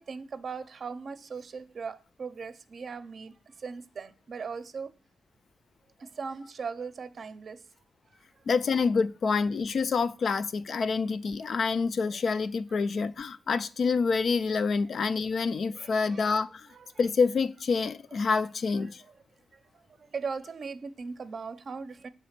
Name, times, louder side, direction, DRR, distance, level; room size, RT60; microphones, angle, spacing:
voice 1, 0.0-4.9 6.0-7.6 11.4-11.5 15.5-16.4 16.7-17.0 18.1-18.2 19.5-22.1, right 5 dB, 55° right, 0.5 m, -39 dB
voice 2, 8.5-16.7 17.0-19.0, left 5 dB, 65° left, 0.4 m, -27 dB
7.0 x 3.4 x 5.8 m
cardioid pair, 95°, 0 cm